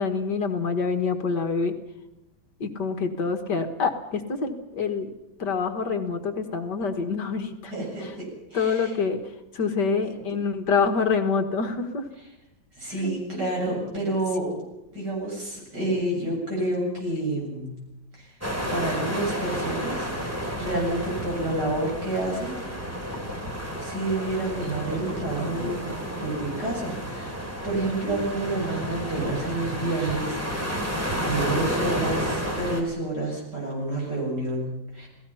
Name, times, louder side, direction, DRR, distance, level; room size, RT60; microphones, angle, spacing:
voice 1, 0.0-1.7 2.6-5.1 5.4-7.7 8.0-8.2 8.5-12.1 13.7-14.0, left 5 dB, 60° left, 7 dB, 2.1 m, -26 dB
voice 2, 7.7-8.9 12.8-14.6 14.9-17.7 18.1-18.3 18.7-20.1 20.5-22.5 23.8-25.9 26.2-27.4 27.6-35.1, right 2 dB, 55° right, -2 dB, 8.1 m, -29 dB
sound 1, 18.4-32.8, equal, 5° right, 3.7 m, -31 dB
29.5 x 17.5 x 5.7 m, 0.94 s
omnidirectional pair, 2.1 m